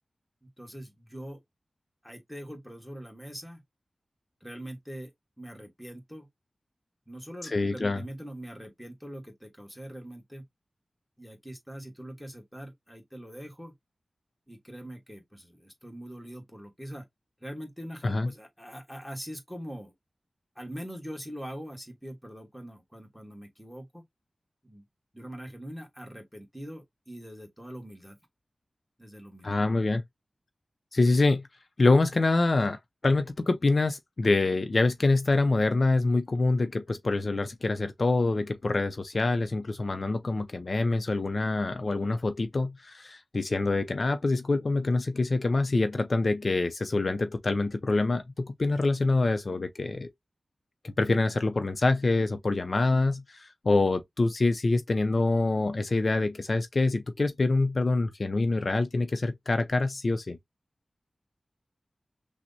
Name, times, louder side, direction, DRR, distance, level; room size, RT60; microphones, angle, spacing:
voice 1, 0.6-1.4 2.0-3.6 4.4-5.1 5.4-6.3 7.1-10.4 11.2-13.7 14.5-17.0 17.4-19.9 20.5-24.0 24.6-24.8 25.1-28.2 29.0-29.5, equal, ahead, 1.2 m, -43 dB
voice 2, 7.4-8.0 18.0-18.3 29.4-30.0 30.9-31.4 31.8-32.8 33.0-50.1 50.8-60.4, left 3 dB, 50° left, 0.4 m, -26 dB
5.9 x 2.0 x 2.7 m
wide cardioid pair, 95°, 0 cm